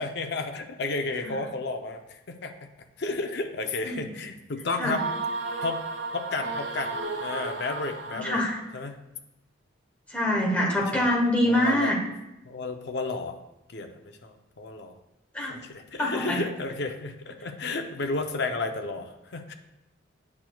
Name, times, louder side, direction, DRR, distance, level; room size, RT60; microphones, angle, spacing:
voice 1, 0.0-2.7 3.0-5.1 5.6-5.8 6.1-8.4 8.7-8.9 10.8-11.1 11.4-11.9 12.4-13.4 13.7-14.9 15.4-19.5, left 3 dB, 55° left, 6 dB, 0.5 m, -32 dB
sound 1, 4.9-8.7, right 3 dB, 60° right, 0.5 m, -33 dB
voice 2, 8.1-8.6 10.1-12.0 15.3-15.5 16.0-16.4, left 1 dB, 5° left, -3 dB, 1.0 m, -25 dB
8.5 x 5.9 x 2.3 m, 0.92 s
head